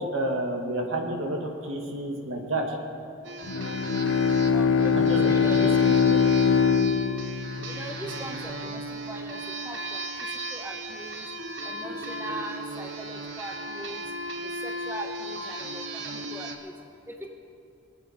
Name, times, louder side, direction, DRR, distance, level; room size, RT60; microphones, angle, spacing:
voice 1, 0.0-2.8 4.8-6.1, right 1 dB, 85° right, 1 dB, 2.1 m, -30 dB
sound 1, 3.2-16.6, right 2 dB, 70° right, 1.2 m, -36 dB
Bowed string instrument, 3.4-8.2, left 6 dB, 75° left, 0.5 m, -22 dB
voice 2, 4.5-4.9 5.2-5.7 7.7-9.4 9.6-10.1 10.5-11.2 11.6-14.0 14.6-16.7 17.1-17.2, right 1 dB, 10° right, 3 dB, 0.9 m, -39 dB
24.5 x 8.7 x 5.1 m, 2.7 s
head